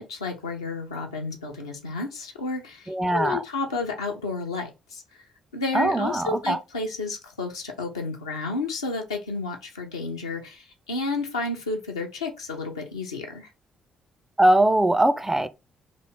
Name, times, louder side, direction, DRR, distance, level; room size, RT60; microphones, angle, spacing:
voice 1, 0.0-5.2 5.5-13.5, left 3 dB, 80° left, 0.5 m, -31 dB
voice 2, 2.9-3.4 5.7-6.6 14.4-15.5, right 1 dB, 10° right, 0.3 m, -21 dB
3.0 x 2.4 x 3.3 m
figure-of-eight pair, 45°, 3 cm